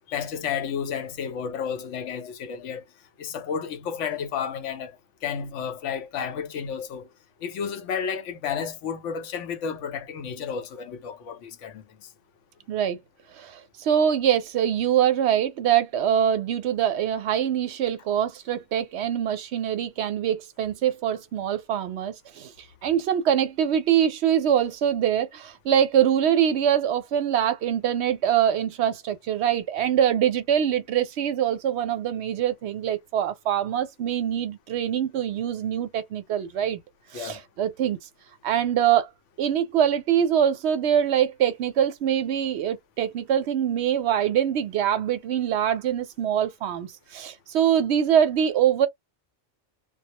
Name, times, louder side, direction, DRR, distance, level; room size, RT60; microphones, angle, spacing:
voice 1, 0.1-2.8 3.2-5.0 5.2-7.1 7.4-11.8 37.1-37.4, left 7 dB, 80° left, 0.9 m, -31 dB
voice 2, 12.7-13.0 13.4-36.8 37.1-38.0 38.4-39.1 39.4-48.9, right 9 dB, 70° right, 0.8 m, -24 dB
2.2 x 2.0 x 2.8 m
omnidirectional pair, 1.3 m